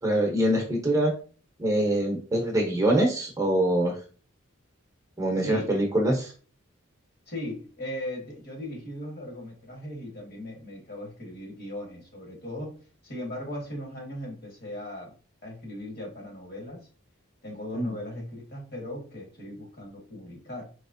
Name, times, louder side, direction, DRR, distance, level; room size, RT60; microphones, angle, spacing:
voice 1, 0.0-1.1 1.6-4.0 5.2-6.3 17.7-18.0, right 1 dB, 15° right, 0 dB, 0.7 m, -24 dB
voice 2, 7.3-12.7 13.0-15.1 15.4-16.9 17.4-20.6, left 1 dB, 50° left, 0 dB, 1.4 m, -38 dB
4.2 x 3.0 x 2.6 m, 0.39 s
head